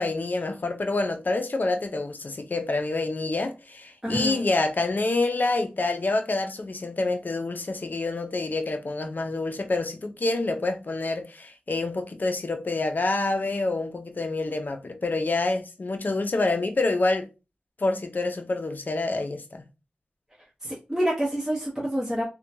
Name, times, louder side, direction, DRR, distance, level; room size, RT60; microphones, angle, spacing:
voice 1, 0.0-17.3 17.8-19.6, left 2 dB, 55° left, 0.5 m, -27 dB
voice 2, 4.0-4.4 20.6-22.2, equal, 5° right, 0.9 m, -27 dB
2.8 x 2.2 x 2.6 m
wide cardioid pair, 55°, 4 cm